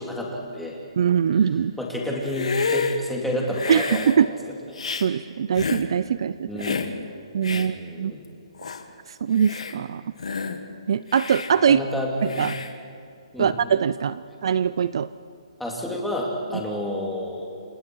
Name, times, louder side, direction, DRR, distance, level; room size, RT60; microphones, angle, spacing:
voice 1, 0.0-0.8 1.8-4.1 4.7-4.8 6.5-6.9 7.5-8.2 11.7-12.6 13.3-13.6 15.6-17.5, left 1 dB, ahead, -3 dB, 2.7 m, -30 dB
voice 2, 1.0-1.7 3.7-4.3 5.0-6.7 7.3-8.1 9.1-10.0 10.9-11.8 12.4-12.5 13.4-15.1, right 7 dB, 50° right, 16 dB, 0.5 m, -22 dB
Hiss, 2.2-3.0 3.5-4.2 4.7-5.1 5.5-5.9 6.6-6.9 7.4-7.7 8.2-8.3 8.6-8.8 9.3-9.7 10.2-10.6 11.1-11.5 12.3-12.7, left 5 dB, 80° left, 2.0 m, -29 dB
30.0 x 26.5 x 4.7 m, 2.6 s
hypercardioid pair, 165°, 3 cm